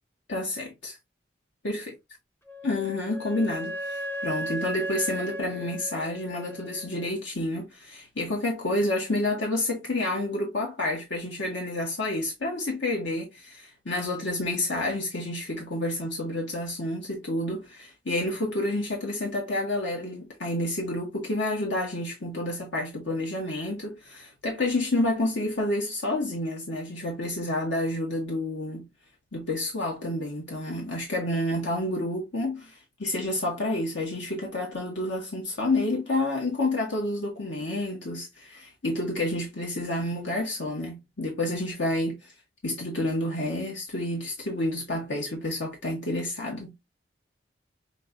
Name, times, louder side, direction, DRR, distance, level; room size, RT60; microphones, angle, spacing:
voice 1, 0.3-1.0 1.6-1.9 2.6-28.9 29.3-42.3 42.6-46.7, left 1 dB, 75° left, 1.6 m, -29 dB
Wind instrument woodwind instrument, 2.5-7.1, equal, 10° left, 0.6 m, -36 dB
6.5 x 3.2 x 2.6 m
head